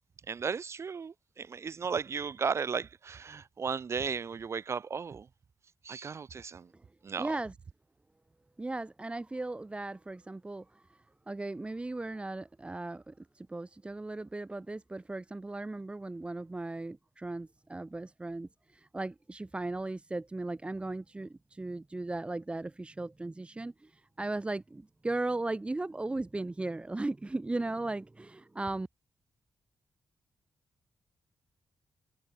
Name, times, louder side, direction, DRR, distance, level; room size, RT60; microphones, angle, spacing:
voice 1, 0.3-5.3 5.8-6.7 7.0-7.3, right 6 dB, 40° right, 1.1 m, -35 dB
voice 2, 7.2-7.6 8.6-28.9, right 2 dB, 15° right, 2.1 m, -37 dB
wide cardioid pair, 165°, 7 cm